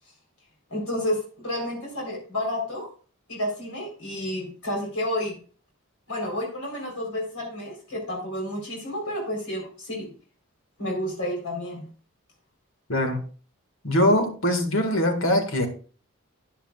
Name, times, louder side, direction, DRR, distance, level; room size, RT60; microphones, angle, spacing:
voice 1, 0.7-2.9 3.3-5.4 6.1-10.1 10.8-11.9, left 1 dB, 90° left, 4.0 m, -30 dB
voice 2, 13.8-15.7, left 1 dB, 70° left, 1.9 m, -22 dB
13.0 x 10.0 x 2.4 m
head